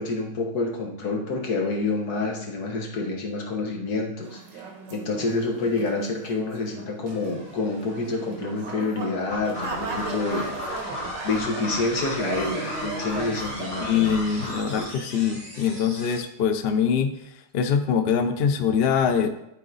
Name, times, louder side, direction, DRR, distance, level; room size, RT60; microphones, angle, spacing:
voice 1, 0.0-4.6 4.9-10.5 11.2-14.2 14.8-14.9, left 3 dB, 65° left, 0 dB, 1.8 m, -28 dB
sound 1, 4.2-14.0 14.4-14.8, right 4 dB, 90° right, 1.8 m, -37 dB
sound 2, 7.0-16.2, equal, 30° right, 3.4 m, -40 dB
sound 3, 9.3-14.8, left 1 dB, 45° left, 1.4 m, -36 dB
voice 2, 13.8-17.1 17.5-19.3, left 7 dB, 85° left, 8 dB, 0.5 m, -23 dB
12.0 x 4.0 x 3.9 m, 0.79 s
omnidirectional pair, 1.9 m